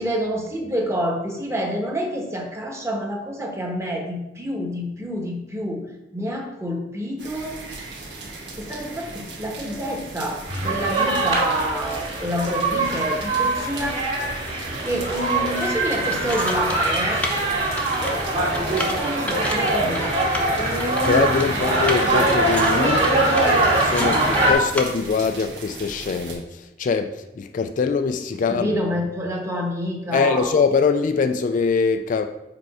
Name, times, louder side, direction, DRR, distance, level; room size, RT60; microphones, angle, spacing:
voice 1, 0.0-5.8 6.1-7.6 8.6-14.1 14.8-17.2 18.9-20.1 21.4-21.7 28.5-30.5, equal, 15° right, 0 dB, 1.1 m, -28 dB
sound 1, 7.2-26.4, right 3 dB, 80° right, 1.3 m, -38 dB
sound 2, 10.5-24.5, right 2 dB, 35° right, 2.1 m, -22 dB
sound 3, 15.8-24.8, left 1 dB, 10° left, 0.7 m, -33 dB
voice 2, 18.5-19.0 21.1-23.1 23.8-28.8 30.1-32.3, left 5 dB, 45° left, 7 dB, 0.3 m, -23 dB
5.0 x 4.6 x 4.7 m, 0.93 s
head